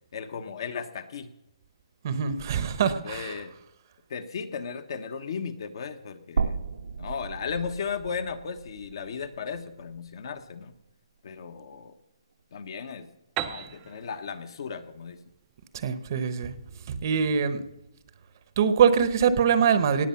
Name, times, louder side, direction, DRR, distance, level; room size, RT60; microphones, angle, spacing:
voice 1, 0.1-1.3 3.0-3.5 4.1-6.6 7.0-10.7 11.2-11.9 12.5-13.1 13.4-15.2, left 6 dB, 50° left, 9 dB, 1.1 m, -35 dB
voice 2, 2.0-3.4 15.7-16.5 16.9-17.6 18.6-20.1, right 7 dB, 35° right, 11 dB, 0.9 m, -23 dB
sound 1, 6.4-10.5 10.9-11.0 12.4-12.5, right 5 dB, 90° right, 1.2 m, -34 dB
Piano, 13.4-17.0, right 13 dB, 15° right, 0.5 m, -39 dB
18.0 x 7.4 x 5.8 m, 0.87 s
hypercardioid pair, 165°, 3 cm